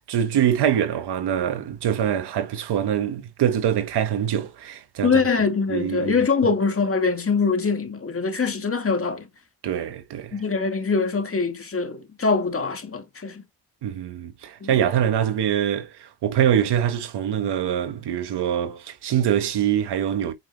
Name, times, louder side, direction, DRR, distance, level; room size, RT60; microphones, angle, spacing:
voice 1, 0.0-5.2 5.7-6.2 9.6-10.4 13.8-20.3, right 9 dB, 85° right, 1.5 m, -24 dB
voice 2, 5.0-9.3 10.3-13.4 14.6-14.8, left 4 dB, 35° left, 1.9 m, -23 dB
8.7 x 5.3 x 3.3 m
cardioid pair, 80°, 39 cm